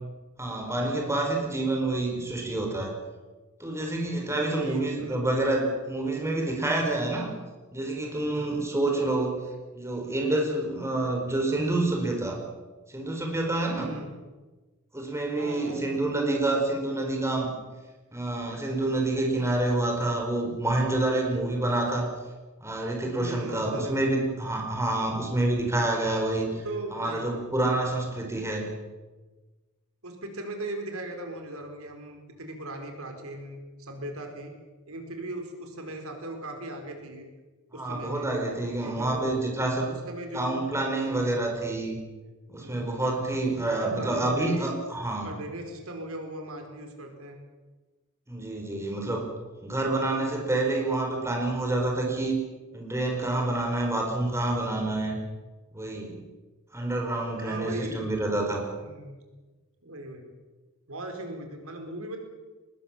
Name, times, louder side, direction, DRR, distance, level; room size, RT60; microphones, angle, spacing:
voice 1, 0.4-2.9 3.6-7.3 7.7-9.4 9.7-12.4 12.9-13.9 14.9-17.5 18.1-22.1 22.6-26.5 26.9-28.7 37.7-39.9 40.3-42.0 42.5-45.4 48.3-49.3 49.6-52.3 52.7-55.1 55.7-56.2 56.7-58.7, right 2 dB, 15° right, 1 dB, 4.5 m, -28 dB
voice 2, 4.5-5.2 8.2-8.7 13.7-14.1 15.4-15.9 23.2-24.6 26.5-27.3 30.0-34.5 34.9-37.3 37.7-38.3 38.8-39.4 40.0-40.6 41.0-41.4 42.6-42.9 43.7-44.7 45.2-47.4 57.4-58.1 58.8-59.1 59.8-60.3 60.9-62.2, right 1 dB, 70° right, 4 dB, 4.6 m, -38 dB
24.0 x 21.0 x 7.4 m, 1.3 s
head